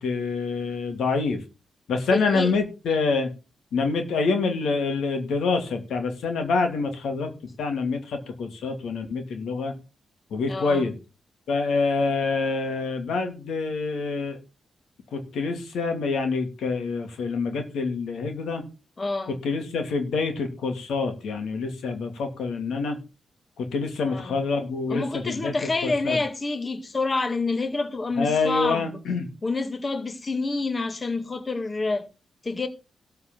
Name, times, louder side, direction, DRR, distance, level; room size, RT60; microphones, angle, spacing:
voice 1, 0.0-1.4 1.9-3.3 3.7-7.3 7.6-9.7 10.3-10.9 11.5-14.4 15.1-18.6 19.4-23.0 23.6-25.5 25.8-26.2 28.2-29.3, left 4 dB, 85° left, 2.4 m, -26 dB
voice 2, 2.1-2.5 10.5-10.9 19.0-19.4 24.0-24.5 24.9-29.0 29.4-32.1 32.4-32.7, left 3 dB, 40° left, 1.8 m, -28 dB
13.0 x 4.7 x 7.5 m
cardioid pair, 60°, 0 cm